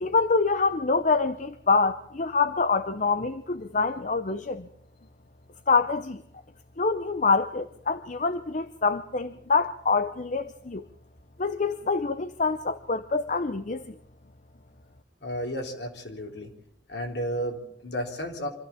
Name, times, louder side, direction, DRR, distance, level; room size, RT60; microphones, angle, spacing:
voice 1, 0.0-4.7 5.7-6.2 6.8-10.9 11.4-13.9, left 4 dB, 45° left, 11 dB, 0.7 m, -26 dB
voice 2, 15.2-16.5 16.9-18.5, equal, 70° left, 3 dB, 3.7 m, -32 dB
25.5 x 14.5 x 7.2 m, 0.73 s
head